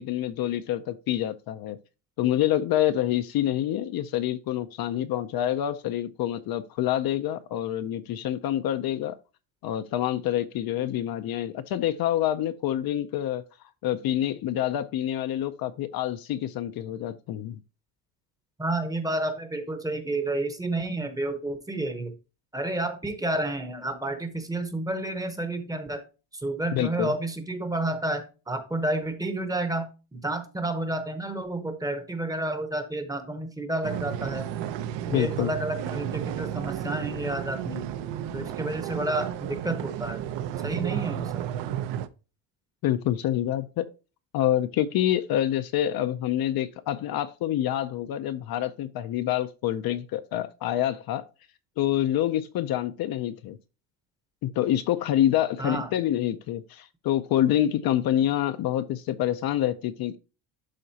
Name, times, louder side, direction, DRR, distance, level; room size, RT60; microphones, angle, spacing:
voice 1, 0.0-1.8 2.2-9.2 9.6-13.4 13.8-17.6 26.7-27.1 35.1-35.5 42.8-43.9 44.3-51.2 51.8-53.6 54.4-60.2, left 12 dB, 50° left, 0.6 m, -27 dB
voice 2, 18.6-22.1 22.5-26.0 26.4-34.4 35.1-37.9 38.3-40.2 40.6-41.4 55.6-55.9, right 2 dB, 10° right, 0.8 m, -30 dB
sound 1, 33.8-42.1, right 10 dB, 65° right, 0.8 m, -32 dB
11.5 x 4.1 x 2.8 m
cardioid pair, 180°, 48 cm